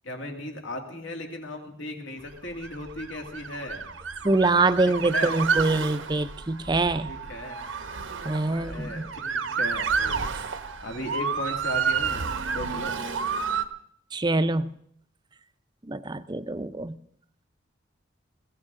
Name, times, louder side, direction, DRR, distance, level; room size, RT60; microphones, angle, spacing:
voice 1, 0.0-3.9 4.8-5.4 7.0-7.7 8.5-9.9 10.8-13.0, left 1 dB, 70° left, 2.2 m, -36 dB
Motor vehicle (road) / Siren, 2.5-13.6, right 5 dB, 80° right, 1.0 m, -30 dB
voice 2, 4.2-7.1 8.2-9.1 14.1-14.7 15.9-17.0, right 2 dB, 20° right, 0.5 m, -24 dB
21.0 x 16.0 x 3.7 m
head